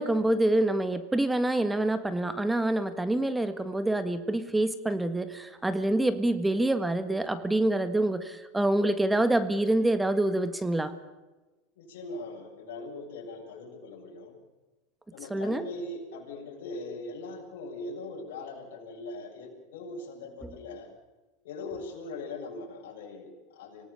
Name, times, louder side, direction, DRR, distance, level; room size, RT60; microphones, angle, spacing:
voice 1, 0.0-10.9 15.3-15.6 20.4-20.5, right 1 dB, 5° right, 11 dB, 1.6 m, -26 dB
voice 2, 11.8-14.4 15.1-20.9 21.4-23.9, left 2 dB, 75° left, -2 dB, 6.8 m, -40 dB
26.0 x 18.0 x 7.0 m, 1.2 s
supercardioid pair, 120°, 0 cm